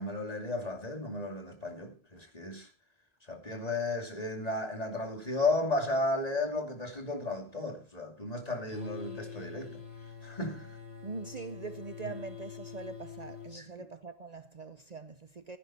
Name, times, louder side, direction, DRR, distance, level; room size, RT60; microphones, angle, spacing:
voice 1, 0.0-2.7 3.3-9.8 10.2-10.8 12.0-12.2 13.5-13.8, left 2 dB, 40° left, 2.7 m, -34 dB
sound 1, 8.7-13.6, left 6 dB, 80° left, 3.0 m, -45 dB
voice 2, 11.0-15.6, right 4 dB, 45° right, 0.8 m, -43 dB
15.5 x 9.8 x 4.3 m
omnidirectional pair, 1.0 m